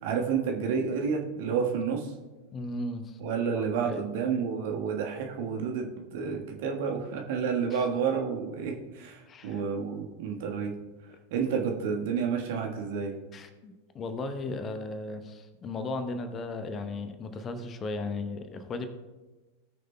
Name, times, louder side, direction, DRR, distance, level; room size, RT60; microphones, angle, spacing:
voice 1, 0.0-2.1 3.2-10.7 11.3-13.1, right 6 dB, 50° right, 1 dB, 1.4 m, -30 dB
voice 2, 2.5-3.2 3.6-4.0 7.7-7.8 9.3-9.6 13.3-18.9, left 2 dB, 25° left, 8 dB, 0.8 m, -36 dB
18.5 x 6.5 x 2.2 m, 1.2 s
figure-of-eight pair, 90°, 0 cm